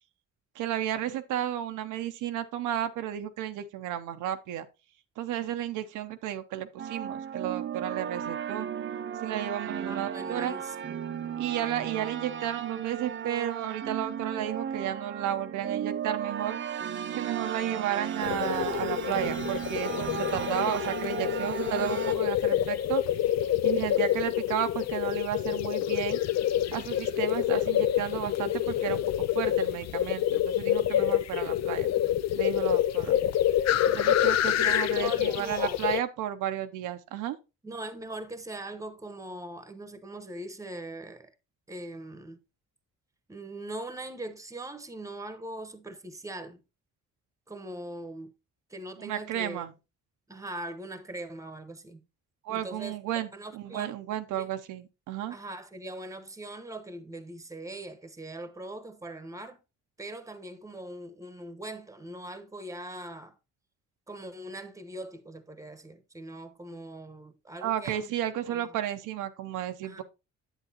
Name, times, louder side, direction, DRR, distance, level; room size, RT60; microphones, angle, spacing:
voice 1, 0.6-4.7 5.2-8.7 9.2-10.5 11.4-16.6 17.1-23.0 23.6-26.2 26.7-29.0 29.3-31.9 32.4-33.2 33.9-37.4 49.0-49.7 52.4-55.3 67.6-70.0, right 11 dB, 85° right, 0.7 m, -33 dB
sound 1, 6.8-22.1, right 8 dB, 40° right, 0.6 m, -35 dB
voice 2, 9.8-11.0 34.5-35.8 37.6-41.3 41.7-42.4 43.3-46.6 47.5-48.3 48.7-49.6 50.3-52.0 52.5-54.0 54.3-54.5 55.3-59.6 60.0-63.3 64.1-68.1 68.5-68.7 69.8-70.0, right 1 dB, 10° right, 1.0 m, -41 dB
sound 2, 18.2-36.0, left 11 dB, 60° left, 0.5 m, -27 dB
8.1 x 8.0 x 2.8 m
cardioid pair, 90°, 30 cm